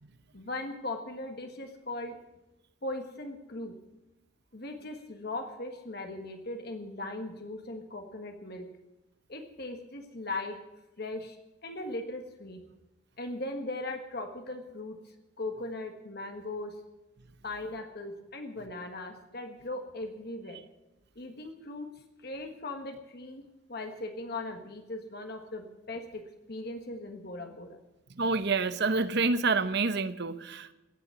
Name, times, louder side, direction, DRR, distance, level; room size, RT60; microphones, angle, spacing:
voice 1, 0.3-2.2 2.8-3.8 4.5-8.7 9.3-10.6 11.0-11.4 11.6-12.6 13.2-15.0 15.4-16.8 17.4-20.6 21.1-21.9 22.2-23.4 23.7-27.8, left 2 dB, 50° left, 4 dB, 1.5 m, -39 dB
voice 2, 28.1-30.7, right 4 dB, 55° right, 13 dB, 0.9 m, -28 dB
17.0 x 7.1 x 9.3 m, 1.0 s
head